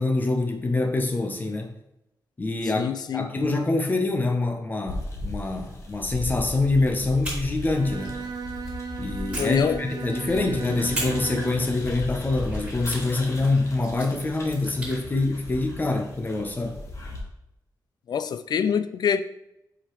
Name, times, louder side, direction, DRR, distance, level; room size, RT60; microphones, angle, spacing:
voice 1, 0.0-1.7 2.4-8.2 9.0-16.8, left 2 dB, 25° left, 0.8 m, -25 dB
voice 2, 2.7-3.3 9.4-9.8 18.1-19.2, left 7 dB, 65° left, 0.4 m, -25 dB
sound 1, 4.9-17.2, left 1 dB, 40° left, 1.3 m, -37 dB
sound 2, 7.2-8.8 9.3-10.3 10.9-15.0, right 1 dB, 15° right, 2.5 m, -39 dB
Bowed string instrument, 7.6-11.8, right 5 dB, 65° right, 0.5 m, -36 dB
7.2 x 5.0 x 3.1 m
wide cardioid pair, 180°, 8 cm